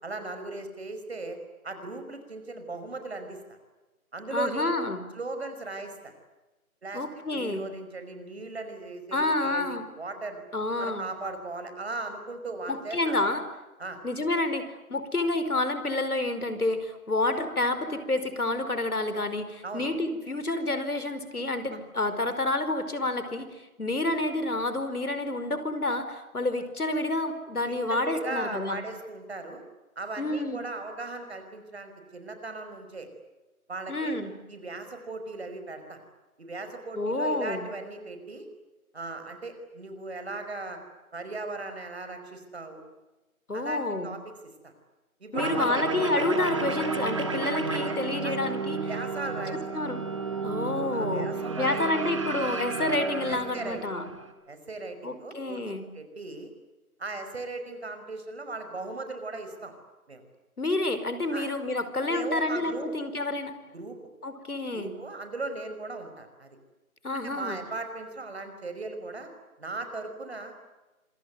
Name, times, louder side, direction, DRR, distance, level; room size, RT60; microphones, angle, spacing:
voice 1, 0.0-1.4 1.6-3.6 4.1-4.7 5.2-6.1 6.8-7.0 7.3-9.7 10.0-10.4 10.8-13.2 13.8-14.0 19.6-19.9 27.7-29.6 30.0-33.1 33.7-34.2 34.5-36.0 36.4-38.5 38.9-40.8 41.1-42.8 43.5-44.2 44.6-44.7 45.2-45.8 47.7-48.0 48.2-48.3 48.9-49.6 50.9-52.1 53.3-53.8 54.5-55.6 55.9-56.5 57.0-59.7 60.1-60.2 61.3-61.5 62.1-62.9 63.7-64.0 64.7-66.6 67.2-69.3 69.6-70.5, right 3 dB, 45° right, 7 dB, 5.5 m, -37 dB
voice 2, 4.3-5.0 6.9-7.7 9.1-9.8 10.5-11.1 12.7-13.4 14.0-28.8 30.2-30.6 33.9-34.4 36.9-37.7 43.5-44.1 45.3-48.9 49.7-50.0 50.4-51.3 51.6-54.1 55.0-55.9 60.6-63.5 64.2-64.9 67.0-67.6, left 2 dB, 85° left, 11 dB, 5.0 m, -29 dB
sound 1, 45.3-54.3, right 4 dB, 20° right, 1.9 m, -32 dB
26.5 x 23.0 x 9.4 m, 1.1 s
figure-of-eight pair, 170°, 44 cm